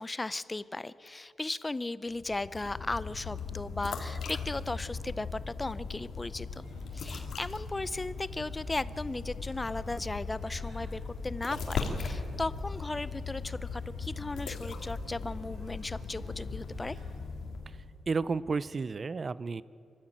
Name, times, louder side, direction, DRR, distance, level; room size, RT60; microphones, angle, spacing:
voice 1, 0.0-6.7 6.9-17.0, left 2 dB, 15° left, 17 dB, 0.5 m, -36 dB
sound 1, 2.1-18.0, left 4 dB, 80° left, 2.7 m, -39 dB
sound 2, 6.6-17.0, right 3 dB, 80° right, 5.9 m, -52 dB
voice 2, 18.1-19.6, right 4 dB, 35° right, 18 dB, 0.5 m, -31 dB
24.5 x 13.0 x 9.0 m, 2.4 s
wide cardioid pair, 140°, 0 cm